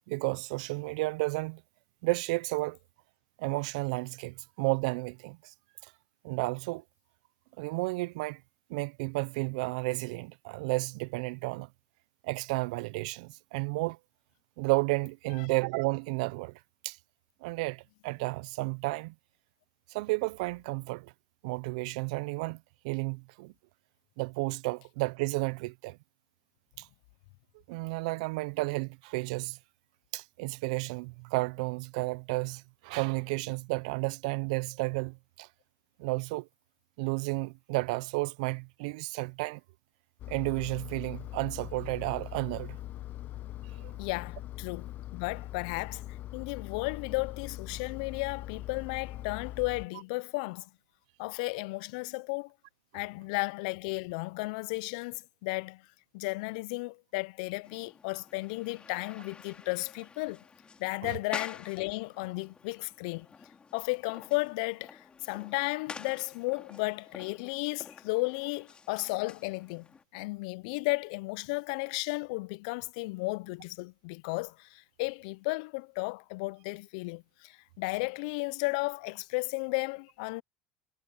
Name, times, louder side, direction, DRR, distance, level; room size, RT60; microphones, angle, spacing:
voice 1, 0.1-1.6 2.0-2.8 3.4-5.5 5.8-5.9 6.2-6.8 7.6-8.4 8.7-11.7 12.2-14.0 14.6-17.0 17.4-19.1 19.9-21.1 21.4-23.5 24.2-26.0 26.8-26.9 27.7-29.6 30.1-35.5 36.0-36.5 37.0-39.6 40.3-42.8 43.8-43.9 61.0-61.2, right 25 dB, 80° right, 0.5 m, -32 dB
Engine, 40.2-49.9, left 14 dB, 50° left, 0.9 m, -42 dB
voice 2, 44.0-46.0 46.3-50.7 51.2-52.5 52.9-55.8 56.1-60.4 60.8-63.3 63.7-69.9 70.1-80.4, left 27 dB, 75° left, 0.3 m, -34 dB
sound 1, 57.6-70.0, left 5 dB, 25° left, 2.6 m, -49 dB
supercardioid pair, 95°, 4 cm